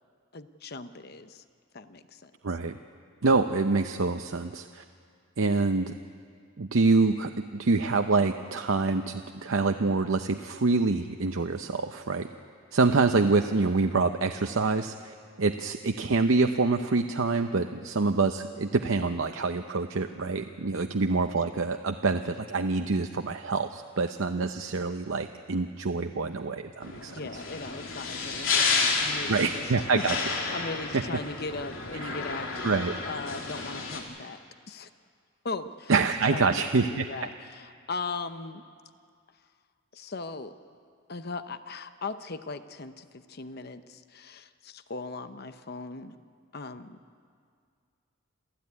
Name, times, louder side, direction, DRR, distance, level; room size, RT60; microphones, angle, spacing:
voice 1, 0.3-1.4 1.7-2.3 20.7-20.9 27.1-30.0 30.5-32.8 33.0-34.4 34.7-34.9 35.4-35.9 36.3-38.6 39.9-40.5 41.1-46.1 46.5-47.0, left 3 dB, 50° left, 10 dB, 0.8 m, -38 dB
voice 2, 2.4-2.8 3.2-4.8 5.4-5.9 6.6-12.3 12.7-27.1 29.3-30.1 30.5-30.6 30.9-31.0 32.0-32.1 32.6-32.9 35.9-37.1, right 3 dB, 80° right, 6 dB, 0.7 m, -26 dB
sound 1, 26.8-34.0, left 4 dB, 80° left, 3.2 m, -31 dB
28.0 x 14.0 x 9.6 m, 2.2 s
head